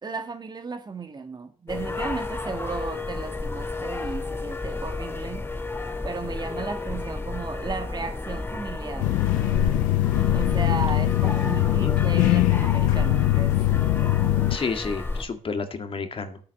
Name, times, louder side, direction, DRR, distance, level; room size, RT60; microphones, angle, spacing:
voice 1, 0.0-5.4 6.0-9.1 10.3-13.6, right 4 dB, 35° right, 7 dB, 1.9 m, -35 dB
sound 1, 1.7-15.2, left 3 dB, 15° left, 2.6 m, -31 dB
sound 2, 9.0-14.6, left 17 dB, 90° left, 0.5 m, -22 dB
voice 2, 10.9-11.9 14.5-16.4, left 4 dB, 45° left, 7 dB, 1.9 m, -32 dB
10.0 x 8.6 x 6.5 m, 0.43 s
cardioid pair, 75°, 13 cm